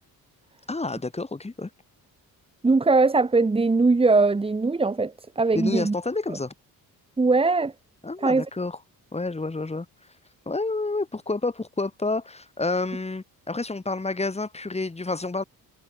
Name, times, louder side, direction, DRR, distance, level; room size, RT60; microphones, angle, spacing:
voice 1, 0.7-1.7 5.5-6.5 8.0-8.8 9.1-9.9 10.4-15.4, left 3 dB, 15° left, 3.5 m, -29 dB
voice 2, 2.6-5.9 6.3-6.4 7.2-7.7 8.2-8.5, right 3 dB, 15° right, 1.1 m, -21 dB
cardioid pair, 105°, 36 cm